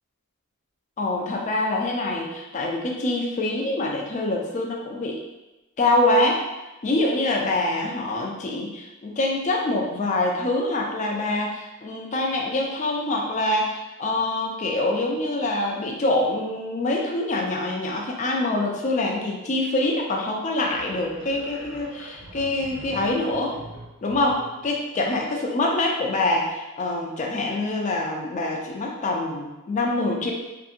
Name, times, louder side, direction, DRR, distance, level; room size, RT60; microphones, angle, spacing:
voice 1, 1.0-5.2 5.8-6.4 6.8-23.6 24.0-30.3, left 2 dB, 30° left, 0 dB, 0.3 m, -25 dB
sound 1, 20.6-24.8, right 1 dB, 60° right, 0.6 m, -43 dB
2.7 x 2.6 x 2.4 m, 1.0 s
head